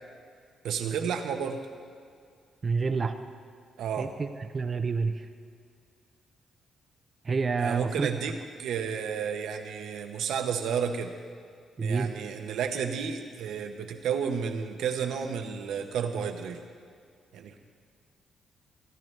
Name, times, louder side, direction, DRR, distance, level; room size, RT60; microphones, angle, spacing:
voice 1, 0.6-1.6 3.8-4.1 7.6-11.1 11.8-16.6 17.3-17.6, right 7 dB, 80° right, 5 dB, 0.9 m, -31 dB
voice 2, 2.6-3.1 4.0-5.3 7.2-8.1 11.8-12.1, right 4 dB, 40° right, 7 dB, 0.6 m, -28 dB
17.0 x 10.5 x 3.2 m, 2.2 s
cardioid pair, 70°, 0 cm